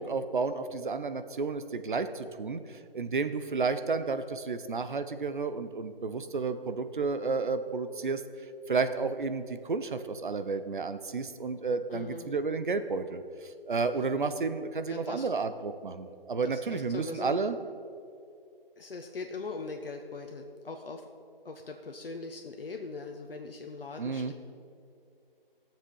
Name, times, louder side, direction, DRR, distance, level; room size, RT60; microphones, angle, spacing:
voice 1, 0.0-17.6 24.0-24.3, right 4 dB, 55° right, 10 dB, 0.8 m, -32 dB
voice 2, 11.9-12.3 14.9-15.3 16.4-17.3 18.8-21.1 21.4-24.3, left 3 dB, 70° left, 3 dB, 1.1 m, -40 dB
14.5 x 7.4 x 5.5 m, 2.5 s
figure-of-eight pair, 170°, 29 cm